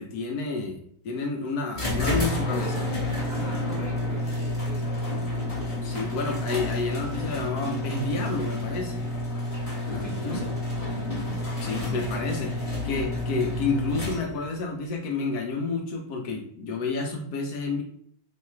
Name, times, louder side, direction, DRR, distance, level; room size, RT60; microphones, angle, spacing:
voice 1, 0.0-2.9 5.8-9.1 9.9-10.4 11.6-17.8, left 3 dB, 70° left, 2 dB, 1.0 m, -30 dB
sound 1, 1.7-14.5, left 1 dB, 25° left, 0.9 m, -29 dB
voice 2, 3.3-5.2 10.0-10.6, right 2 dB, 55° right, -5 dB, 0.4 m, -42 dB
3.1 x 2.4 x 4.2 m, 0.62 s
omnidirectional pair, 1.9 m